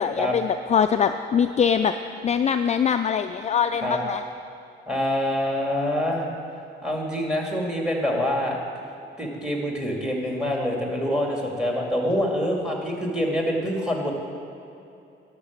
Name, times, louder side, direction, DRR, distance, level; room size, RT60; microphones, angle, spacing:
voice 1, 0.0-1.9 2.2-4.2, left 7 dB, 35° left, 8 dB, 0.4 m, -23 dB
voice 2, 4.9-6.3 6.8-8.6 9.2-14.1, equal, 5° right, 0 dB, 2.2 m, -25 dB
11.5 x 6.0 x 7.3 m, 2.7 s
cardioid pair, 90°, 20 cm